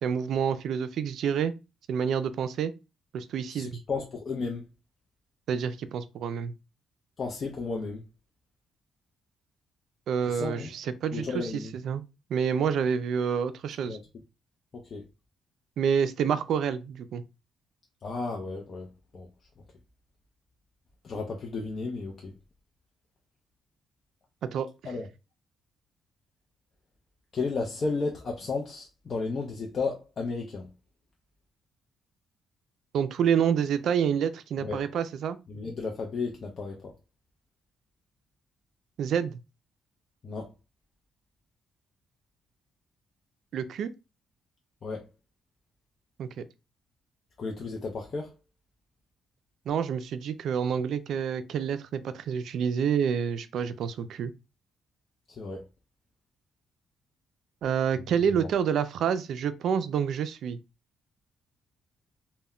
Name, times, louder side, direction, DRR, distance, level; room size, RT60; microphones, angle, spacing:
voice 1, 0.0-1.5 1.9-2.7 3.1-3.8 5.5-6.5 10.1-12.0 12.3-14.0 15.8-17.2 24.5-24.7 32.9-35.4 39.0-39.4 43.5-43.9 46.2-46.4 49.7-54.3 57.6-60.6, right 7 dB, 70° right, 0.3 m, -28 dB
voice 2, 3.5-4.7 7.2-8.0 10.3-10.7 11.1-11.7 13.9-14.0 14.7-15.0 18.0-19.3 21.0-22.3 24.8-25.1 27.3-30.7 34.6-34.8 35.5-36.9 40.2-40.5 44.8-45.1 47.4-48.3 55.3-55.7 58.4-58.5, left 4 dB, 45° left, 0.5 m, -33 dB
2.1 x 2.1 x 3.6 m
cardioid pair, 90°, 0 cm